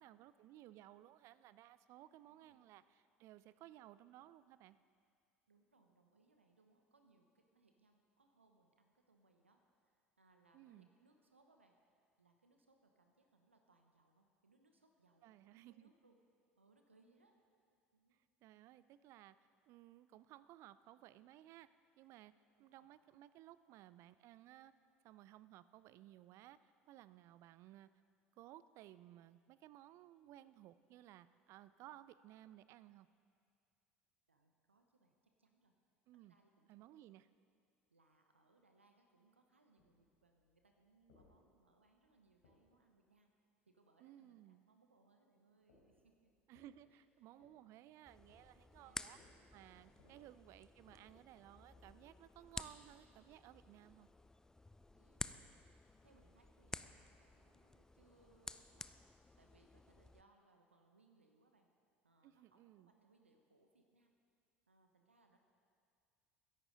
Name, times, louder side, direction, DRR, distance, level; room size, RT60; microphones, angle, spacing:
voice 1, 0.0-4.8 10.5-10.9 15.2-15.9 18.1-19.4 19.7-21.7 22.0-22.3 22.6-24.7 25.0-27.9 28.3-33.1 36.1-36.3 36.7-37.3 44.0-44.6 46.5-54.1 62.2-62.9, right 13 dB, 50° right, 16 dB, 0.5 m, -59 dB
voice 2, 2.0-2.6 5.5-16.2 16.6-17.3 17.9-18.2 22.6-22.9 34.3-35.7 36.1-37.0 37.9-43.3 43.6-46.3 46.9-47.5 48.7-49.2 49.9-50.3 55.0-59.0 59.4-61.7 62.0-64.1 64.7-65.4, right 3 dB, 85° right, 4 dB, 1.0 m, -73 dB
sound 1, 39.8-43.2 45.6-52.3, left 2 dB, 70° left, 3.8 m, -73 dB
sound 2, 48.1-60.2, left 2 dB, 10° left, 0.5 m, -53 dB
21.5 x 11.0 x 3.8 m, 2.3 s
figure-of-eight pair, 70°, 6 cm